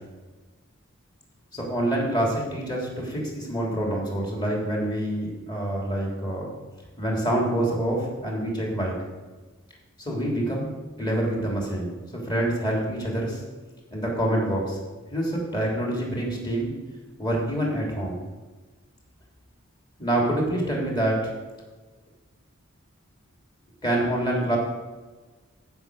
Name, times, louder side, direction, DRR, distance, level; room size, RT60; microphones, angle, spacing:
voice 1, 1.5-6.5 7.0-9.0 10.0-10.7 11.0-12.0 12.2-13.4 13.9-14.8 15.1-16.7 17.2-18.2 20.0-21.3 23.8-24.6, right 1 dB, 20° left, -2 dB, 3.2 m, -26 dB
14.5 x 6.1 x 6.8 m, 1.3 s
head